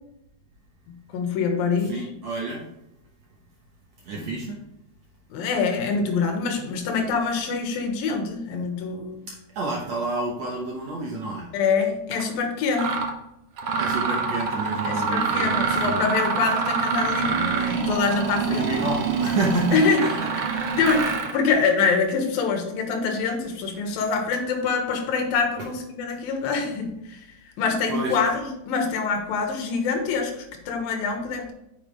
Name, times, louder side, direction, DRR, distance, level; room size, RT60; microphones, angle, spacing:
voice 1, 0.9-2.0 4.1-4.4 5.3-9.2 11.5-13.0 14.9-18.7 19.7-20.0 20.8-27.2 27.6-31.5, left 5 dB, 75° left, 4 dB, 3.0 m, -25 dB
voice 2, 1.8-2.6 4.0-4.6 9.3-11.5 13.8-16.0 18.5-20.3 23.8-24.0 25.6-25.7 27.9-28.2, right 2 dB, 60° right, -2 dB, 1.8 m, -29 dB
Mechanisms, 12.1-12.2 12.7-13.1 13.6-21.4, right 5 dB, 90° right, 1.3 m, -26 dB
9.0 x 7.1 x 3.4 m, 0.85 s
omnidirectional pair, 4.3 m